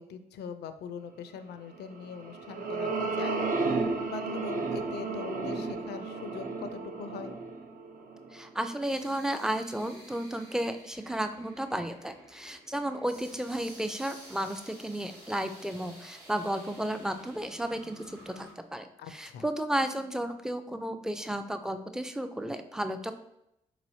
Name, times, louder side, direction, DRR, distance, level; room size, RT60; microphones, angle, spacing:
voice 1, 0.0-3.4 3.8-7.3 19.0-19.4, left 6 dB, 70° left, 10 dB, 0.4 m, -41 dB
sound 1, 2.0-8.5, right 3 dB, 50° right, 0.7 m, -33 dB
sound 2, 7.9-18.5, right 1 dB, 90° right, 1.0 m, -52 dB
voice 2, 8.3-23.1, right 1 dB, 5° right, 9 dB, 0.4 m, -33 dB
4.0 x 3.0 x 2.7 m, 0.81 s
hypercardioid pair, 45°, 18 cm